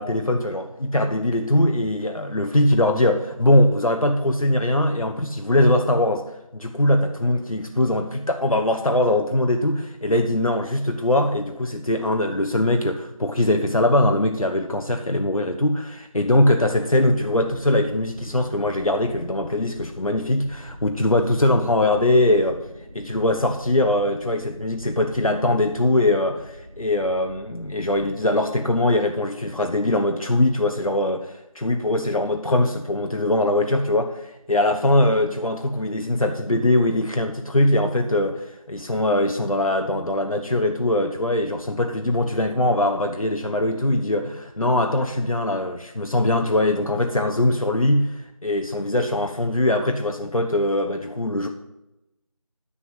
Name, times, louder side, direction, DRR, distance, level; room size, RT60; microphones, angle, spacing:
voice 1, 0.0-6.2 6.5-22.6 22.9-48.1 48.4-51.5, left 1 dB, 70° left, 4 dB, 1.0 m, -21 dB
sound 1, 17.0-28.1, equal, 50° right, 1.9 m, -44 dB
9.9 x 7.9 x 5.5 m, 0.91 s
figure-of-eight pair, 180°, 18 cm